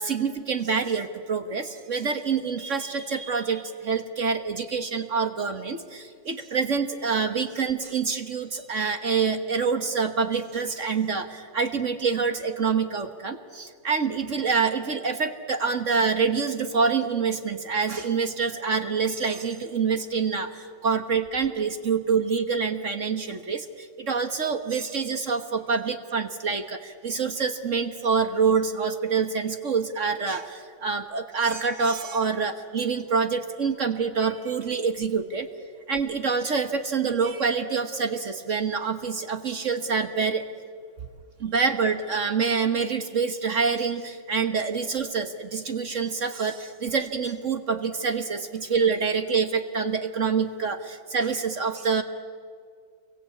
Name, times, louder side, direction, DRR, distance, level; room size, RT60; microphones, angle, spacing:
voice 1, 0.0-35.5 35.9-40.4 41.4-52.0, right 5 dB, 45° right, 8 dB, 1.4 m, -26 dB
27.5 x 23.0 x 8.5 m, 2.1 s
omnidirectional pair, 2.1 m